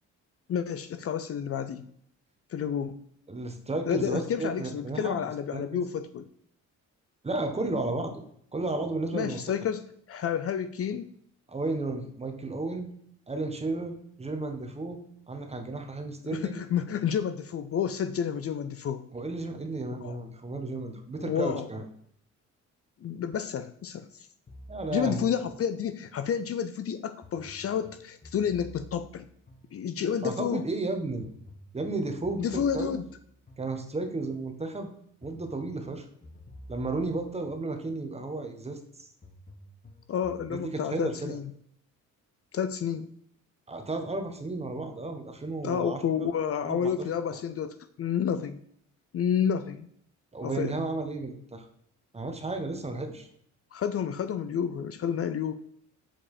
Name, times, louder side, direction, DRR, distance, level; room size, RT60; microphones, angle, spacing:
voice 1, 0.5-1.9 2.5-3.0 3.9-6.2 9.1-11.1 16.2-19.0 20.0-20.2 21.2-21.7 23.0-24.3 24.9-29.3 29.7-30.6 32.4-33.0 40.1-41.5 42.5-43.1 45.6-48.6 49.1-49.9 50.4-50.7 53.7-55.5, left 8 dB, 50° left, 11 dB, 0.6 m, -30 dB
voice 2, 3.3-5.2 5.5-5.8 7.2-8.2 8.5-9.4 11.5-12.9 13.3-15.0 15.3-16.6 19.1-21.8 24.7-25.3 30.2-31.3 31.7-32.9 33.6-34.9 35.2-36.1 36.7-39.1 40.5-41.4 43.7-46.3 46.6-47.1 50.3-51.7 52.1-53.3, right 2 dB, 20° right, 5 dB, 1.4 m, -33 dB
sound 1, 24.5-26.3 27.2-30.3 31.2-34.3 35.2-38.3 39.2-40.6, left 1 dB, 30° left, 1.2 m, -51 dB
7.6 x 4.3 x 5.0 m, 0.67 s
cardioid pair, 90°, 30 cm